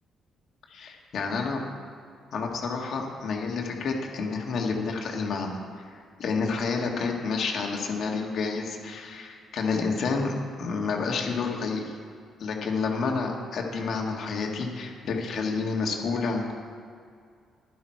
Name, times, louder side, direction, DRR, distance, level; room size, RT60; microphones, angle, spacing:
voice 1, 0.7-1.6 2.3-12.0 12.4-16.5, left 4 dB, 65° left, 1 dB, 1.7 m, -29 dB
11.0 x 10.5 x 4.6 m, 2.2 s
cardioid pair, 90°, 0 cm